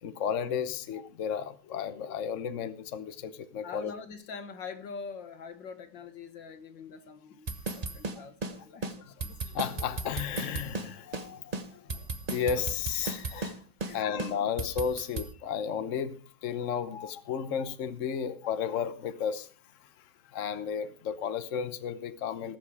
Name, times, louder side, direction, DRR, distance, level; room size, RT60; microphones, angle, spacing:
voice 1, 0.0-3.9 8.5-9.1 9.4-13.6 13.9-19.5 19.8-22.6, left 7 dB, 50° left, 1.1 m, -34 dB
voice 2, 3.6-9.3 13.8-14.3, left 5 dB, 80° left, 2.1 m, -44 dB
sound 1, 7.5-8.6 8.8-8.9 9.2-10.9 11.1-11.3 11.5-13.6 13.8-13.9 14.2-15.3, right 3 dB, 30° right, 0.7 m, -35 dB
19.0 x 7.5 x 4.9 m
omnidirectional pair, 2.0 m